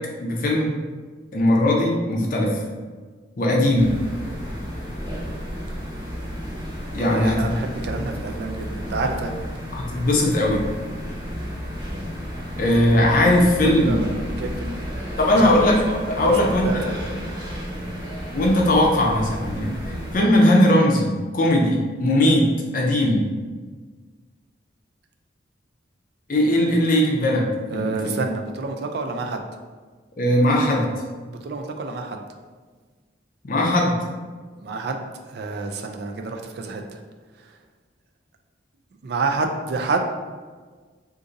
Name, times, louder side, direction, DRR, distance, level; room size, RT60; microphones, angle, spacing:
voice 1, 0.2-0.8 1.3-2.6 3.4-3.9 6.9-7.5 9.7-10.7 12.6-14.0 15.2-16.8 18.3-19.8 20.1-23.3 26.3-28.1 30.2-30.9 33.5-33.9, left 1 dB, 45° left, -1 dB, 0.5 m, -19 dB
sound 1, 3.7-20.2, equal, 20° right, 0.7 m, -32 dB
voice 2, 7.0-9.5 13.6-14.9 15.3-15.7 16.2-17.3 27.7-29.4 31.3-32.2 34.6-37.0 37.4-37.6 39.0-40.1, right 3 dB, 55° right, 3 dB, 0.3 m, -29 dB
2.6 x 2.5 x 3.8 m, 1.4 s
head